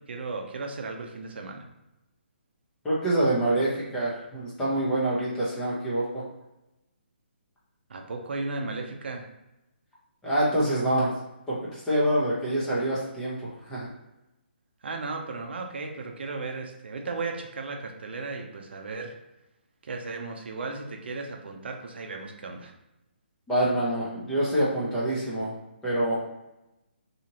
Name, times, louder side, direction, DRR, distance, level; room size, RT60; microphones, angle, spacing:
voice 1, 0.1-1.6 7.9-9.3 14.8-19.1 19.8-22.7, right 3 dB, 65° right, 3 dB, 0.5 m, -35 dB
voice 2, 2.8-6.2 10.2-11.1 11.5-13.3 13.7-13.9 23.5-25.5 25.8-26.2, right 1 dB, 10° left, -8 dB, 0.8 m, -26 dB
2.8 x 2.5 x 2.9 m, 0.94 s
hypercardioid pair, 155°, 6 cm